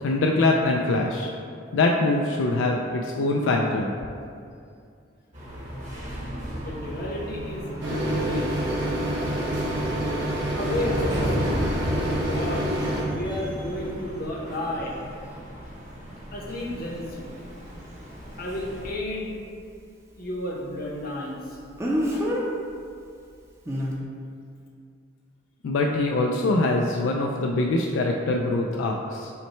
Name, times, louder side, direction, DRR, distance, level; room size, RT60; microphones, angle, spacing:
voice 1, 0.0-1.3 1.7-3.9 25.6-29.3, left 2 dB, 85° left, 1 dB, 0.3 m, -23 dB
sound 1, 5.3-18.9, equal, 40° right, 1.0 m, -35 dB
voice 2, 6.6-8.5 10.6-11.5 11.9-12.7 13.1-15.0 16.3-17.3 18.4-19.4 20.2-21.6 22.1-22.3, left 1 dB, 50° left, -3 dB, 0.8 m, -32 dB
sound 2, 7.8-13.0, right 1 dB, 70° right, 1.0 m, -27 dB
Speech, 16.5-16.6 21.8-22.4 23.7-23.9, equal, 15° right, 0.5 m, -25 dB
5.6 x 2.1 x 4.3 m, 2.4 s
head